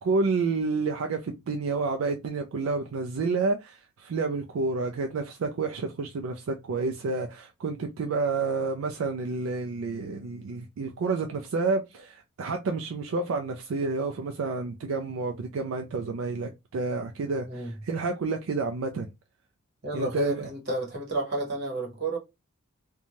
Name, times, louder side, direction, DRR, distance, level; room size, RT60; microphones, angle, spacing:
voice 1, 0.0-19.1 19.9-20.5, right 4 dB, 75° right, 0.4 m, -29 dB
voice 2, 19.8-22.2, right 1 dB, 50° right, 1.1 m, -31 dB
2.6 x 2.2 x 2.9 m
head